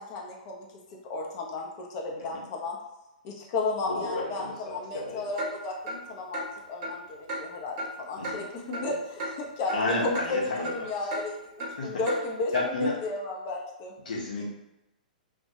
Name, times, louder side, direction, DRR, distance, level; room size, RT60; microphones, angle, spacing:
voice 1, 0.0-2.8 3.2-13.9, left 2 dB, 40° left, -1 dB, 0.5 m, -33 dB
voice 2, 3.9-5.3 8.2-8.4 9.7-10.7 11.8-12.0 12.5-13.0 14.0-14.4, left 3 dB, 65° left, -3 dB, 0.8 m, -31 dB
Clock, 5.4-5.5 5.9-6.0 6.3-6.5 6.8-6.9 7.3-7.4 7.8-7.9 8.2-8.4 8.7-8.8 9.2-9.3 9.7-9.8 10.1-10.3 10.6-10.8 11.1-11.2 11.6-11.7 12.1-12.2 12.5-12.7, right 1 dB, 40° right, 0.8 m, -33 dB
2.2 x 2.1 x 2.7 m, 0.93 s
figure-of-eight pair, 110°, 5 cm